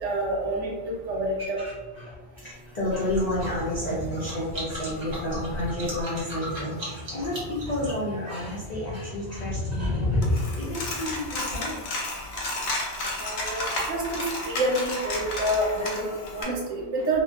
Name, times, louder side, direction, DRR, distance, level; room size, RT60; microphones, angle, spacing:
voice 1, 0.0-1.6 13.2-17.2, right 1 dB, 70° right, -2 dB, 0.9 m, -28 dB
voice 2, 1.4-12.1 17.0-17.1, left 1 dB, 70° left, -7 dB, 0.4 m, -31 dB
sound 1, 2.5-8.7, equal, 40° right, 0.8 m, -38 dB
sound 2, 3.4-11.4, left 1 dB, 20° right, 0.4 m, -33 dB
Coin (dropping), 10.2-16.4, left 1 dB, 90° left, 1.0 m, -32 dB
2.4 x 2.1 x 2.4 m, 1.3 s
omnidirectional pair, 1.3 m